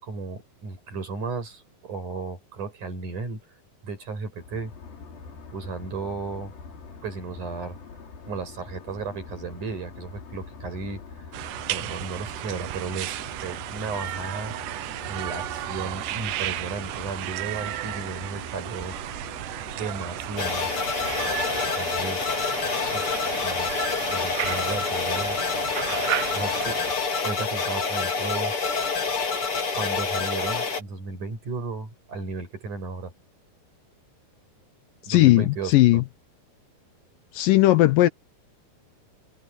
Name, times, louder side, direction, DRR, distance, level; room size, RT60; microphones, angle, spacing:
voice 1, 0.0-3.4 3.8-4.7 5.5-6.5 7.0-7.8 8.3-11.3 11.7-14.8 15.1-19.0 19.8-20.7 21.7-22.4 22.9-23.7 24.1-25.4 26.3-26.8 27.2-28.5 29.7-33.1 35.0-36.1, right 4 dB, 50° right, 7.8 m, -34 dB
sound 1, 4.4-21.7, left 5 dB, 60° left, 6.0 m, -44 dB
sound 2, 11.3-26.9, right 14 dB, 80° right, 1.9 m, -34 dB
sound 3, 20.4-30.8, left 5 dB, 35° left, 3.4 m, -27 dB
voice 2, 35.1-36.0 37.3-38.1, left 16 dB, 80° left, 2.0 m, -17 dB
omnidirectional pair, 4.7 m